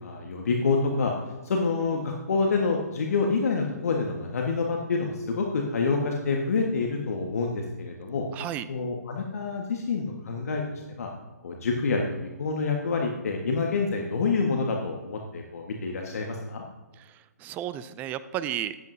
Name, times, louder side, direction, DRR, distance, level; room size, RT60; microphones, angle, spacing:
voice 1, 0.0-1.1 1.4-8.3 8.7-11.1 11.4-16.6, left 4 dB, 60° left, 1 dB, 1.5 m, -27 dB
voice 2, 8.3-8.7 17.0-18.8, right 11 dB, 20° right, 14 dB, 0.5 m, -33 dB
14.0 x 10.5 x 2.7 m, 1.2 s
figure-of-eight pair, 135°, 9 cm